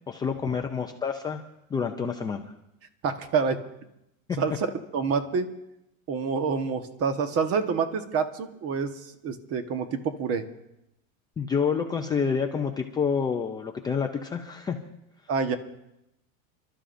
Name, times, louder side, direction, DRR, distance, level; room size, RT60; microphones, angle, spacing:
voice 1, 0.1-1.4 1.7-2.5 4.3-4.4 11.4-14.8, left 6 dB, 10° left, 2 dB, 0.4 m, -28 dB
voice 2, 3.0-3.6 4.4-4.7 4.9-5.5 6.1-10.4 15.3-15.6, right 5 dB, 35° right, 8 dB, 1.3 m, -27 dB
30.0 x 12.5 x 2.6 m, 0.85 s
supercardioid pair, 145°, 42 cm